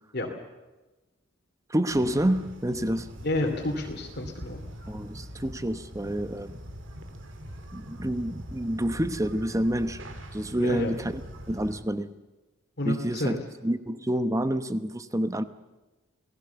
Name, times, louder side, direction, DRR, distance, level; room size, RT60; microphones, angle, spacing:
voice 1, 1.7-3.1 4.9-6.6 7.7-10.0 10.3-11.2 11.5-12.1 12.8-13.4 13.6-15.4, right 1 dB, 15° right, 0.9 m, -28 dB
sound 1, 1.9-11.8, equal, 65° right, 2.5 m, -42 dB
voice 2, 3.2-4.6 10.6-10.9 12.8-13.4, left 1 dB, 50° left, 2.7 m, -30 dB
29.0 x 19.0 x 7.0 m
head